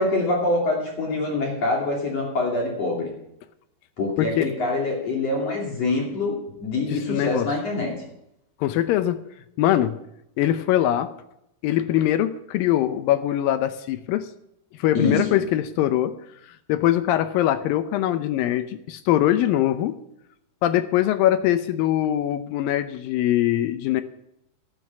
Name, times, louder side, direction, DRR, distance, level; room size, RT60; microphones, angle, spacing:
voice 1, 0.0-3.1 4.0-7.9 14.9-15.4, left 2 dB, 45° left, -1 dB, 3.5 m, -25 dB
voice 2, 4.2-4.5 7.1-7.5 8.6-9.2 9.6-10.0 10.4-11.1 11.6-14.3 14.8-16.1 16.7-20.0 20.6-24.0, left 12 dB, 80° left, 11 dB, 2.1 m, -22 dB
12.0 x 11.0 x 6.0 m, 0.79 s
omnidirectional pair, 4.6 m